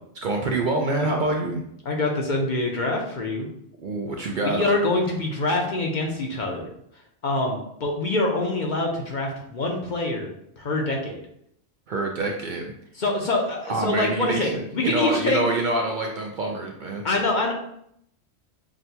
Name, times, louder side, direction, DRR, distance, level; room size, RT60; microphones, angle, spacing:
voice 1, 0.2-1.6 3.8-4.6 11.9-12.7 13.7-17.0, right 2 dB, 60° right, 1 dB, 0.6 m, -26 dB
voice 2, 1.8-3.5 4.4-6.7 7.2-10.3 10.6-11.2 13.0-15.4 17.0-17.5, left 2 dB, 50° left, 1 dB, 0.7 m, -25 dB
6.0 x 2.2 x 2.7 m, 0.72 s
omnidirectional pair, 1.1 m